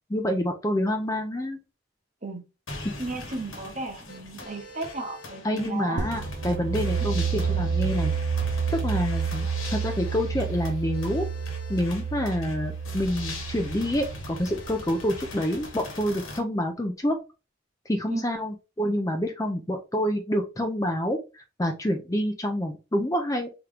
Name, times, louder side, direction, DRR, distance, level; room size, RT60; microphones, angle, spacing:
voice 1, 0.1-1.6 2.8-2.9 5.4-8.1 8.7-11.3 11.7-17.2 17.9-23.5, equal, 15° left, 0.5 m, -27 dB
sound 1, 2.7-16.4, left 2 dB, 85° left, 1.2 m, -41 dB
voice 2, 3.0-6.1 18.1-18.3, right 2 dB, 40° right, 1.0 m, -34 dB
sound 2, 6.0-15.6, right 6 dB, 60° right, 0.5 m, -30 dB
3.7 x 3.0 x 3.3 m
head